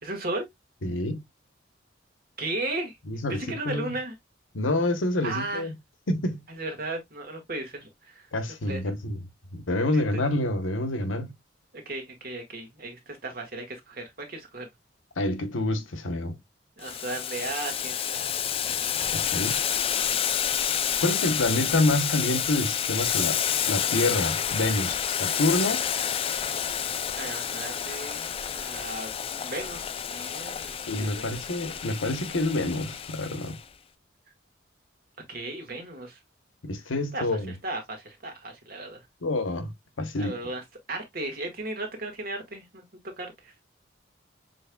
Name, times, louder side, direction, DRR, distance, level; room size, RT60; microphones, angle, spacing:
voice 1, 0.0-0.5 2.4-3.0 3.3-4.1 5.2-5.7 6.5-8.3 8.6-8.8 9.9-10.2 11.8-14.7 16.8-18.4 27.1-29.1 29.4-31.3 35.3-36.2 37.1-39.0 40.2-42.8 43.2-43.5, right 2 dB, 50° right, 1.7 m, -35 dB
voice 2, 0.8-1.2 3.1-4.0 4.5-5.7 6.1-6.4 8.3-9.2 9.5-11.3 15.2-16.4 19.1-19.6 21.0-23.4 23.7-25.8 30.9-33.6 36.6-37.5 39.2-39.7 40.0-40.4, left 2 dB, 90° left, 1.0 m, -27 dB
Boiling, 16.8-33.6, left 9 dB, 30° left, 0.3 m, -29 dB
6.8 x 3.2 x 2.2 m
head